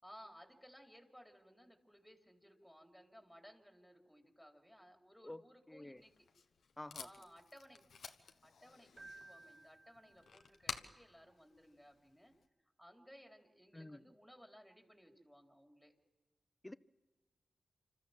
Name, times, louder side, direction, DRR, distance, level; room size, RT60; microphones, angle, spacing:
voice 1, 0.0-6.3 6.9-7.9 8.4-12.3 12.8-15.9, equal, ahead, 3.9 m, -60 dB
voice 2, 5.7-6.0 6.8-7.1 13.7-14.0 16.6-16.7, left 1 dB, 20° left, 0.8 m, -49 dB
Packing tape duct tape, 6.0-12.4, left 6 dB, 85° left, 1.2 m, -52 dB
Keyboard (musical), 9.0-10.8, right 2 dB, 35° right, 0.9 m, -58 dB
26.5 x 13.5 x 7.5 m
cardioid pair, 45°, 0 cm